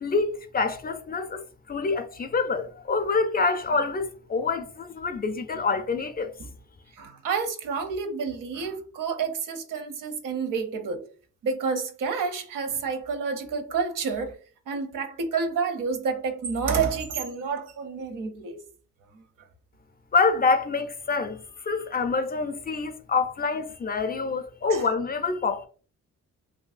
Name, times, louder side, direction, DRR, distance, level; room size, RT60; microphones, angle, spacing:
voice 1, 0.0-6.3 20.1-25.7, left 4 dB, 30° left, 0.4 m, -26 dB
voice 2, 7.0-11.1 11.4-14.4 14.7-18.6 24.7-24.8, right 5 dB, 75° right, 0.6 m, -29 dB
2.9 x 2.6 x 2.4 m
cardioid pair, 95°, 32 cm